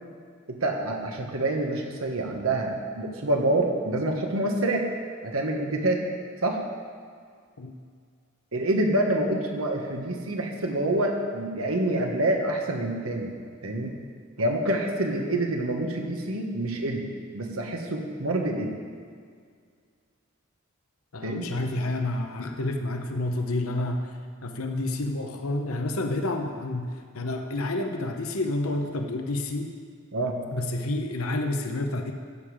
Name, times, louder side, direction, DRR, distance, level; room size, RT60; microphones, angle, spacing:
voice 1, 0.5-4.9 5.2-6.1 6.4-6.6 8.5-13.3 13.6-13.9 14.4-17.1 17.3-18.8 21.2-21.5 30.1-30.4, right 1 dB, 85° right, 1 dB, 1.5 m, -27 dB
voice 2, 21.1-29.7 30.5-32.1, left 2 dB, 85° left, 4 dB, 0.9 m, -29 dB
14.5 x 7.3 x 5.0 m, 2.1 s
head